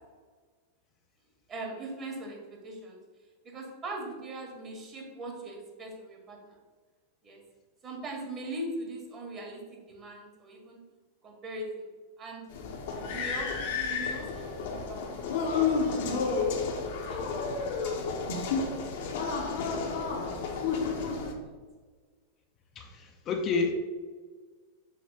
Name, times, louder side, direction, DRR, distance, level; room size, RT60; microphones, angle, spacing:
voice 1, 1.5-3.0 3.4-6.6 7.2-7.4 7.8-10.8 11.2-11.9 12.2-12.4 13.1-16.2 17.1-17.3 17.6-17.9 19.4-19.6 20.2-21.2, right 2 dB, 30° right, 0 dB, 1.7 m, -41 dB
sound 1, 12.5-21.3, left 5 dB, 55° left, 1.0 m, -31 dB
voice 2, 22.8-23.7, left 4 dB, 30° left, 3 dB, 0.7 m, -29 dB
6.5 x 3.2 x 5.6 m, 1.5 s
figure-of-eight pair, 90°, 0 cm